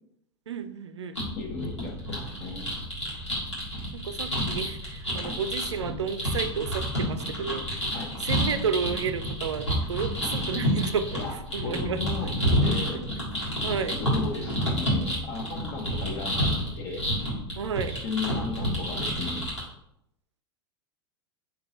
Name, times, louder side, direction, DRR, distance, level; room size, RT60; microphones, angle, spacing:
voice 1, 0.5-1.2 3.9-7.9 8.2-11.2 11.5-12.0 12.9-13.0 13.6-14.0 17.6-18.0, right 6 dB, 80° right, 10 dB, 0.4 m, -32 dB
sound 1, 1.2-19.6, equal, 85° left, 1.5 m, -29 dB
voice 2, 1.4-2.7 5.2-5.4 7.9-8.1 11.2-11.3 11.6-12.3 12.6-13.0 13.9-17.0 17.8-19.5, left 4 dB, 45° left, 0 dB, 0.7 m, -35 dB
3.9 x 2.7 x 3.7 m, 0.78 s
figure-of-eight pair, 85°, 14 cm